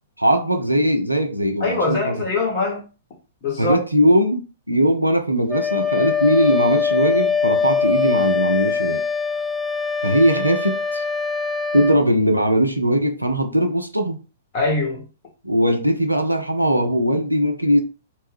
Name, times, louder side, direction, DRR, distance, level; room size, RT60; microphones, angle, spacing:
voice 1, 0.2-2.2 3.6-9.0 10.0-11.0 11.7-14.2 15.4-17.8, equal, 90° right, 0.5 m, -19 dB
voice 2, 1.6-2.8 3.4-3.8 14.5-15.0, left 3 dB, 40° left, 1.1 m, -22 dB
Wind instrument woodwind instrument, 5.5-12.0, left 5 dB, ahead, 0.3 m, -22 dB
2.5 x 2.2 x 3.3 m
figure-of-eight pair, 110°, 0 cm